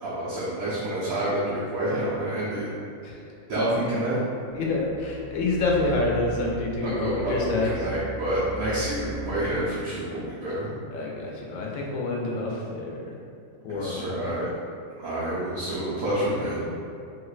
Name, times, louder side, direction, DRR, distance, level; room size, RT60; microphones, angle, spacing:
voice 1, 0.0-2.7 3.5-4.2 6.8-10.7 13.7-14.5 15.0-16.6, right 1 dB, 90° right, -10 dB, 1.2 m, -28 dB
voice 2, 4.5-7.7 10.9-13.0 13.6-14.3, left 2 dB, 80° left, -2 dB, 1.0 m, -27 dB
sound 1, 4.5-9.8, equal, 45° right, 0.9 m, -39 dB
3.1 x 3.0 x 2.3 m, 2.5 s
omnidirectional pair, 1.4 m